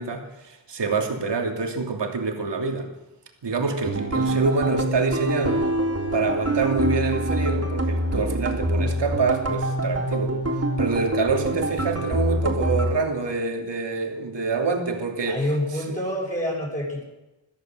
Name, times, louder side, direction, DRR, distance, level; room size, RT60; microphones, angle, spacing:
voice 1, 0.0-2.9 3.4-5.6 6.1-10.4 10.8-15.4, right 4 dB, 70° right, 3 dB, 3.1 m, -26 dB
sound 1, 3.8-12.9, right 1 dB, 35° right, 3.7 m, -25 dB
voice 2, 15.2-17.0, equal, 15° left, -3 dB, 6.8 m, -27 dB
22.5 x 15.0 x 7.7 m, 1.0 s
wide cardioid pair, 130°, 43 cm